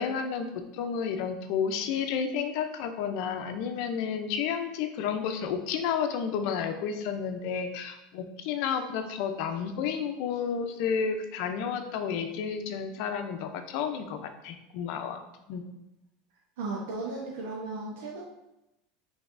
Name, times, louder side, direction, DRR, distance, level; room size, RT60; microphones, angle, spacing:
voice 1, 0.0-15.2 15.5-15.6, left 7 dB, 60° left, 7 dB, 0.6 m, -31 dB
voice 2, 16.6-18.2, right 3 dB, 85° right, -3 dB, 0.8 m, -35 dB
5.9 x 3.4 x 2.6 m, 0.91 s
supercardioid pair, 140°, 0 cm